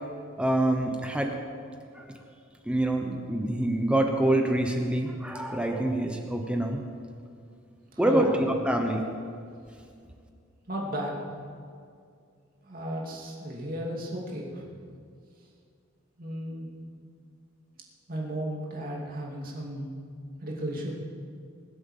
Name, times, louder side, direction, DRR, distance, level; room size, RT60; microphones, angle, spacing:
voice 1, 0.4-1.3 1.9-2.1 2.7-6.8 8.0-9.0, right 1 dB, 5° right, 3 dB, 1.0 m, -26 dB
voice 2, 7.9-8.4 10.7-11.2 12.7-14.6 16.2-16.7 18.1-19.9 20.4-20.9, equal, 45° right, -2 dB, 2.7 m, -34 dB
21.0 x 7.8 x 7.4 m, 2.3 s
head